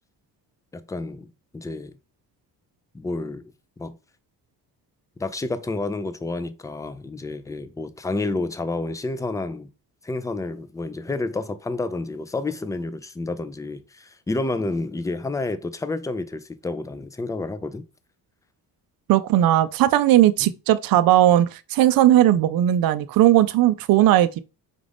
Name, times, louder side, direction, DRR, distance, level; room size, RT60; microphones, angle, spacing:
voice 1, 0.7-2.0 2.9-4.0 5.2-9.7 10.0-17.8 20.4-20.5 22.3-22.4, left 2 dB, 10° left, 0.4 m, -30 dB
voice 2, 19.1-24.4, right 13 dB, 60° right, 0.5 m, -17 dB
5.2 x 2.5 x 3.3 m
cardioid pair, 80°, 41 cm